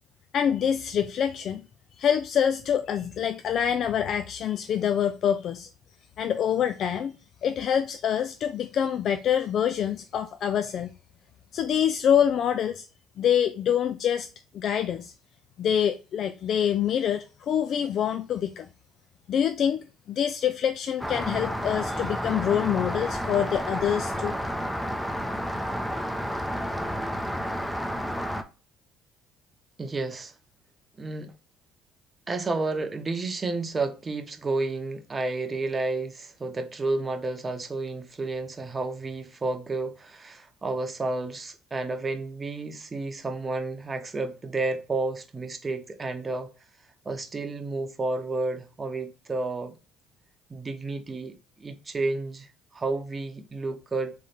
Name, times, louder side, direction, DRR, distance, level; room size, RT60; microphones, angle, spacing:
voice 1, 0.3-1.7 2.0-5.7 6.2-10.9 11.5-12.8 13.2-14.3 14.5-15.1 15.6-18.7 19.3-24.3, left 9 dB, 55° left, 0.3 m, -26 dB
Rain, 21.0-28.4, equal, ahead, 0.7 m, -30 dB
voice 2, 29.8-30.3 31.0-31.3 32.3-46.5 47.0-49.8 50.5-54.1, right 3 dB, 30° right, 0.9 m, -31 dB
3.4 x 3.3 x 4.2 m
hypercardioid pair, 65°, 0 cm